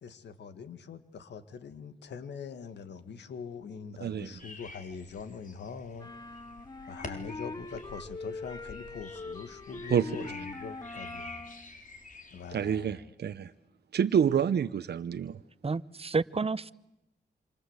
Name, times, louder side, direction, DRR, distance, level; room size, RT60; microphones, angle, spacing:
voice 1, 0.0-6.1 6.9-11.4 12.3-13.0, left 6 dB, 85° left, 11 dB, 2.0 m, -43 dB
voice 2, 4.0-4.3 9.9-10.1 12.5-13.5 13.9-15.4, right 8 dB, 70° right, 10 dB, 0.9 m, -28 dB
sound 1, 4.4-12.7, left 3 dB, 50° left, 4.5 m, -48 dB
sound 2, 6.0-11.7, left 3 dB, 20° left, 1.2 m, -42 dB
voice 3, 15.6-16.7, right 4 dB, 35° right, 17 dB, 1.0 m, -30 dB
27.0 x 26.5 x 8.2 m, 0.90 s
cardioid pair, 55°, 18 cm